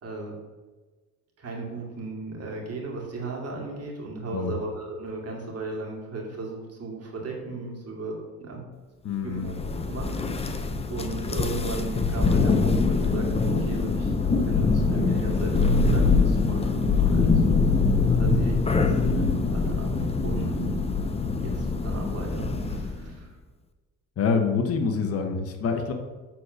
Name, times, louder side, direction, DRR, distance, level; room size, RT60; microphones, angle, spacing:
voice 1, 0.0-0.3 1.4-8.6 9.2-9.5 9.9-10.6 10.9-14.1 14.5-18.8 19.2-19.9 20.2-20.5 21.4-23.3, right 3 dB, 45° right, -1 dB, 2.3 m, -36 dB
voice 2, 9.0-9.5 20.2-20.7 24.2-25.9, left 5 dB, 45° left, 5 dB, 1.0 m, -26 dB
Thunder, 9.4-23.1, left 4 dB, 20° left, 0.5 m, -23 dB
7.6 x 4.1 x 6.4 m, 1.3 s
cardioid pair, 130°, 34 cm